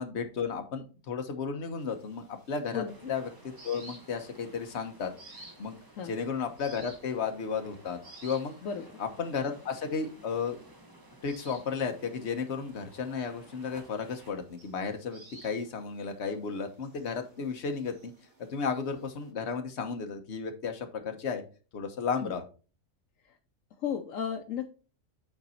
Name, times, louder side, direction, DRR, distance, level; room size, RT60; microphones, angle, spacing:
voice 1, 0.0-5.8 6.0-8.6 9.0-10.6 11.2-18.1 18.4-21.4 21.7-22.4, left 5 dB, 55° left, 5 dB, 1.3 m, -34 dB
sound 1, 1.8-19.3, right 2 dB, 90° right, 2.4 m, -56 dB
sound 2, 2.9-14.3, right 1 dB, 20° right, 1.0 m, -55 dB
voice 2, 23.8-24.7, left 7 dB, 75° left, 6 dB, 1.1 m, -34 dB
8.6 x 4.0 x 4.3 m, 0.35 s
omnidirectional pair, 1.4 m